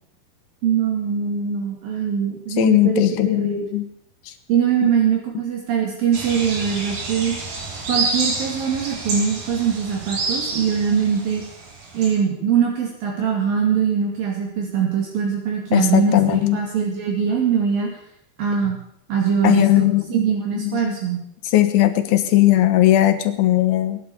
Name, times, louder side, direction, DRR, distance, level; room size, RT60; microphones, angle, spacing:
voice 1, 0.6-3.1 3.4-3.7 4.5-7.4 7.9-11.4 11.9-17.9 18.4-18.8 19.1-21.2, right 7 dB, 65° right, 0 dB, 3.9 m, -22 dB
voice 2, 2.6-3.9 4.3-4.4 4.8-4.9 15.7-16.6 19.4-20.1 20.5-21.0 21.4-24.0, left 14 dB, 75° left, 9 dB, 3.0 m, -18 dB
sound 1, 6.1-12.1, right 3 dB, 85° right, 5.5 m, -28 dB
19.0 x 11.0 x 6.9 m, 0.73 s
omnidirectional pair, 4.5 m